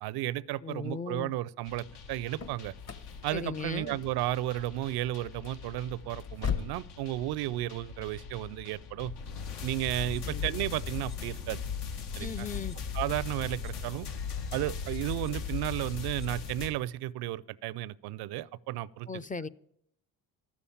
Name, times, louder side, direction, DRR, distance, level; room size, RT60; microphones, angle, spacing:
voice 1, 0.0-2.7 3.2-9.1 9.6-11.6 12.2-12.5 12.9-14.1 14.5-19.1, right 15 dB, 80° right, 0.6 m, -33 dB
voice 2, 0.6-1.3 3.3-4.0 10.2-10.4 12.2-12.8 19.1-19.5, left 5 dB, 20° left, 0.5 m, -37 dB
sound 1, 1.6-16.7, left 6 dB, 80° left, 2.0 m, -39 dB
sound 2, 1.9-6.9, left 7 dB, 40° left, 1.3 m, -39 dB
12.5 x 7.2 x 8.6 m
supercardioid pair, 80°, 39 cm